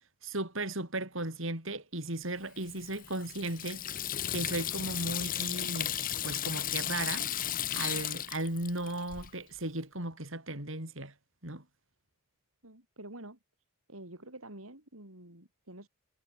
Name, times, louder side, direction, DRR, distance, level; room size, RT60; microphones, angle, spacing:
voice 1, 0.2-3.8 4.3-5.9 6.2-7.3 7.7-11.1 11.4-11.6, right 2 dB, 65° right, 6.4 m, -36 dB
Water tap faucet / Sink (filling or washing), 2.6-9.3, left 11 dB, 40° left, 0.9 m, -35 dB
voice 2, 12.6-13.4 13.9-15.9, right 1 dB, 80° right, 6.4 m, -48 dB
head